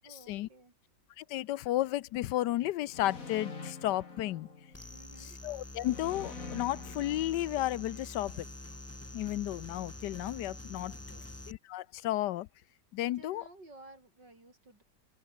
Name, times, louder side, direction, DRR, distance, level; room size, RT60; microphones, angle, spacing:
voice 1, 0.0-0.7 4.9-5.4 10.8-11.3 13.0-14.8, right 2 dB, 85° right, 8.3 m, -55 dB
voice 2, 1.2-4.5 5.4-8.5 9.1-10.9 11.5-12.5 12.9-13.4, left 15 dB, 80° left, 1.2 m, -33 dB
sound 1, 2.9-5.1 5.8-8.0, left 4 dB, 50° left, 3.4 m, -46 dB
sound 2, 4.7-11.5, left 1 dB, 10° left, 1.4 m, -46 dB
open air
omnidirectional pair, 1.9 m